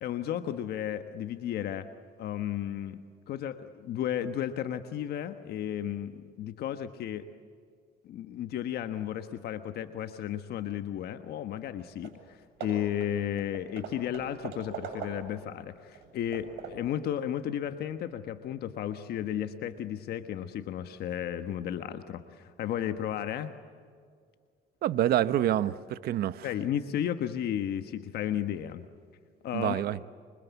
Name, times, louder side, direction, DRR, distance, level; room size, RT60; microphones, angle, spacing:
voice 1, 0.0-1.9 2.2-7.2 8.0-23.5 26.4-28.9 29.4-29.8, left 10 dB, 70° left, 1.3 m, -34 dB
Hammer / Wood, 11.7-11.8 12.0-12.3 12.6-15.5 15.9-17.0, right 7 dB, 85° right, 7.5 m, -42 dB
voice 2, 24.8-26.5 29.5-30.0, right 12 dB, 65° right, 1.0 m, -27 dB
27.0 x 25.0 x 8.3 m
cardioid pair, 110°, 17 cm